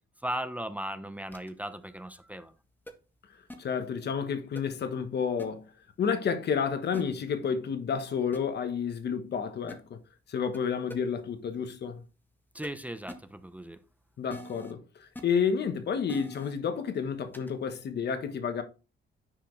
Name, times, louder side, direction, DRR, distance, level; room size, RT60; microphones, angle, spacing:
voice 1, 0.2-2.5 12.5-13.8, right 1 dB, 5° right, 0.7 m, -37 dB
sound 1, 1.3-1.5 2.9-3.0 3.5-3.6 4.6-4.7 5.4-5.5 6.9-7.0 8.3-8.4 9.7-9.8 10.5-10.6 10.9-11.0 12.6-12.7 13.1-13.2 14.3-14.7 15.2-15.3 16.1-16.5 17.3-17.5, left 1 dB, 10° left, 1.5 m, -42 dB
voice 2, 3.6-5.7 6.0-10.0 10.3-12.0 14.2-18.6, left 6 dB, 55° left, 1.3 m, -30 dB
10.0 x 4.7 x 3.2 m
cardioid pair, 90°, 20 cm